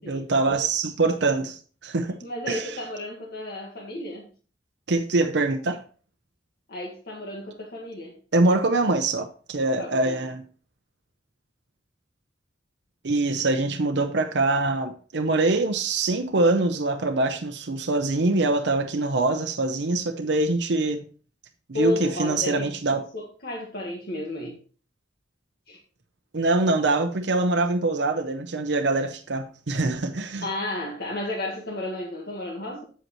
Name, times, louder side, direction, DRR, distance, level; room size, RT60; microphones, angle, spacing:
voice 1, 0.0-2.2 2.5-2.8 4.9-5.8 8.3-10.4 13.0-21.1 21.7-23.0 26.3-30.4, right 2 dB, 65° right, 0.7 m, -24 dB
voice 2, 2.2-4.3 6.7-8.2 9.8-10.3 21.7-22.7 23.1-24.6 25.7-25.8 30.4-32.9, left 2 dB, 60° left, 1.5 m, -32 dB
7.9 x 7.7 x 3.0 m
head